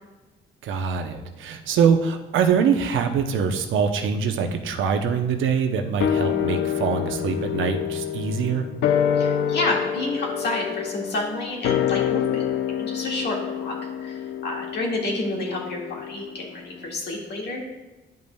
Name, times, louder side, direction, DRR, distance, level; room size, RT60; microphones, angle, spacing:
voice 1, 0.6-8.7, right 6 dB, 80° right, 6 dB, 0.8 m, -23 dB
sound 1, 6.0-16.6 16.9-17.0, left 9 dB, 75° left, 0.5 m, -27 dB
voice 2, 9.2-12.4 12.8-13.8 14.0-17.6, left 2 dB, 60° left, -1 dB, 1.9 m, -29 dB
10.5 x 5.4 x 2.3 m, 1.1 s
cardioid pair, 90°, 20 cm